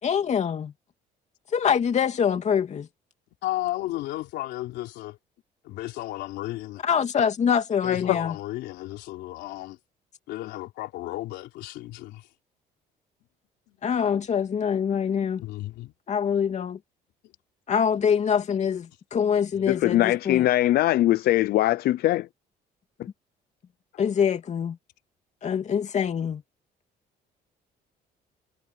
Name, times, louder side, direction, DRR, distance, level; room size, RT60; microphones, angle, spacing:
voice 1, 0.0-0.7 1.5-2.9 6.8-8.4 13.8-15.4 16.1-16.8 17.7-20.5 24.0-24.8 25.4-26.4, left 7 dB, 45° left, 2.7 m, -24 dB
voice 2, 3.4-5.2 5.6-6.8 7.8-9.8 10.3-12.3 13.7-13.8 15.4-15.9, left 16 dB, 85° left, 3.5 m, -34 dB
voice 3, 19.7-22.3, left 14 dB, 65° left, 0.6 m, -21 dB
cardioid pair, 110°, 17 cm